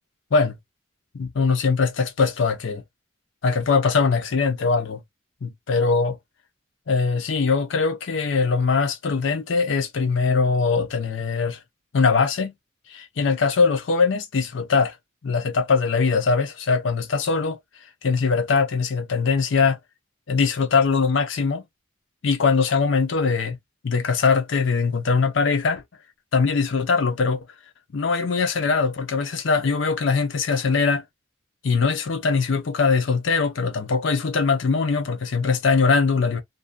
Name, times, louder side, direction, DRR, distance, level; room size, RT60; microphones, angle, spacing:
voice 1, 1.1-2.8 3.4-5.0 5.4-6.2 6.9-11.6 11.9-12.5 12.9-14.9 15.2-17.6 18.0-19.8 20.3-21.6 22.2-23.6 23.8-25.8 26.3-27.5 27.9-31.0 31.6-36.4, left 4 dB, 70° left, 0.5 m, -21 dB
2.5 x 2.2 x 2.4 m
head